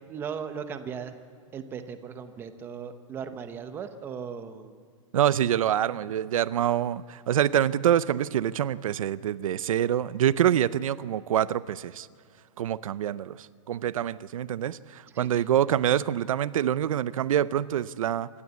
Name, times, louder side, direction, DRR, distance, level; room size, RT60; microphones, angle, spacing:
voice 1, 0.1-1.2 1.5-4.8 15.1-15.5, right 7 dB, 10° right, 9 dB, 0.8 m, -37 dB
voice 2, 5.1-12.1 12.6-18.3, right 10 dB, 75° right, 18 dB, 0.6 m, -26 dB
26.5 x 12.5 x 8.4 m, 2.1 s
hypercardioid pair, 170°, 17 cm